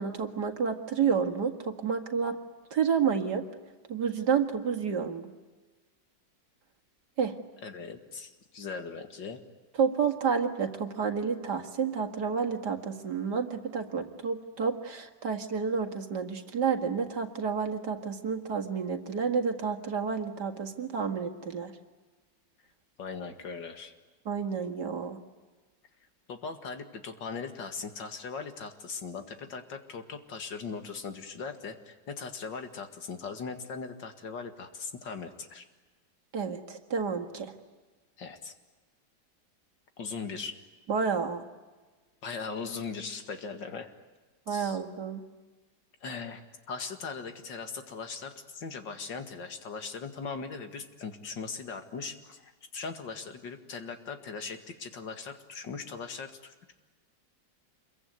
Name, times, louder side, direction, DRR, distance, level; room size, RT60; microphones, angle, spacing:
voice 1, 0.0-2.4 2.7-3.4 3.9-5.3 7.2-7.3 9.8-21.7 24.3-25.2 36.3-37.5 40.9-41.4 44.5-45.2, right 6 dB, 65° right, 5 dB, 2.4 m, -30 dB
voice 2, 7.6-9.4 23.0-23.9 26.3-35.7 38.2-38.5 40.0-40.6 42.2-43.9 44.5-44.8 46.0-56.7, left 5 dB, 75° left, 7 dB, 2.6 m, -39 dB
27.0 x 22.5 x 9.5 m, 1.3 s
omnidirectional pair, 2.0 m